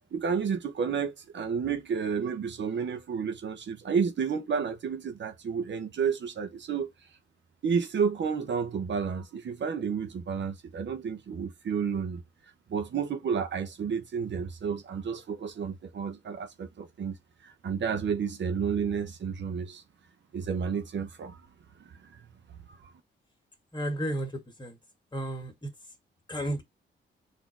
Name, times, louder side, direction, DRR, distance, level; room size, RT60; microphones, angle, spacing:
voice 1, 0.1-6.9 7.6-12.2 12.7-17.2 17.4-19.8 20.3-21.4 21.8-22.2 22.7-22.8, right 6 dB, 60° right, 0.9 m, -31 dB
voice 2, 23.7-24.8 25.1-25.7 26.3-26.6, right 1 dB, 20° left, 1.9 m, -33 dB
4.1 x 2.9 x 4.5 m
cardioid pair, 65°, 21 cm